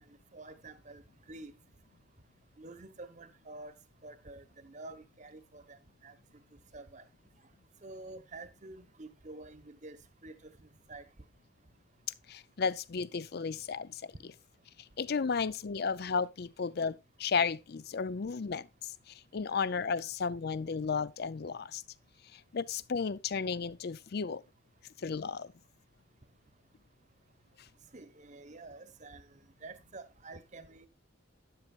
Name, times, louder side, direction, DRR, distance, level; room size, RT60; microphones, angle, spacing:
voice 1, 0.1-1.6 2.6-3.8 4.0-6.4 6.7-7.0 7.8-11.1 27.9-30.9, right 2 dB, 35° right, 1.0 m, -49 dB
voice 2, 12.3-14.0 15.0-18.7 19.3-21.8 22.5-24.4 25.0-25.5, left 5 dB, 50° left, 0.5 m, -33 dB
12.5 x 9.0 x 2.4 m
head